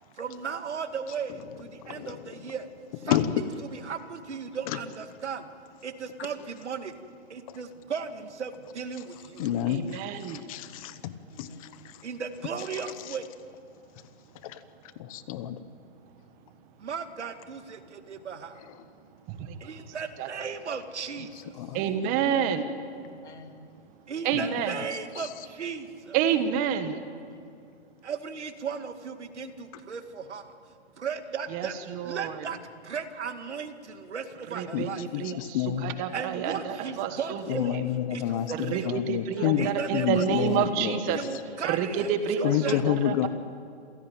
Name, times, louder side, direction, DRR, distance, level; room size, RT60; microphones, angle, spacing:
voice 1, 0.2-2.7 3.0-5.5 5.8-6.9 7.3-9.5 12.0-13.3 16.8-18.6 19.6-21.5 24.1-26.2 28.0-30.6 31.0-32.6 32.8-35.0 36.1-37.8 38.1-39.0 39.6-40.7 41.1-42.8, right 6 dB, 85° right, 8 dB, 2.2 m, -36 dB
voice 2, 1.8-2.2 3.1-3.4 7.5-7.6 9.4-10.0 10.3-11.1 11.4-11.5 14.4-14.6 15.0-15.6 21.6-21.8 24.3-24.5 34.7-34.9 35.1-35.9 37.5-41.2 42.4-43.3, left 11 dB, 30° left, 14 dB, 1.1 m, -28 dB
voice 3, 9.7-10.4 19.3-19.6 20.2-20.3 21.7-22.7 24.2-24.8 26.1-27.0 31.5-32.5 34.5-37.4 38.7-41.2 41.6-43.3, right 8 dB, 25° right, 9 dB, 1.4 m, -29 dB
voice 4, 11.3-11.8 22.1-22.6 23.2-23.6 26.9-27.5 36.0-36.1 36.9-37.2 39.4-39.5 39.8-39.9 42.5-42.6, left 4 dB, 85° left, 5 dB, 3.1 m, -48 dB
27.5 x 16.5 x 9.0 m, 2.3 s
hypercardioid pair, 150°, 34 cm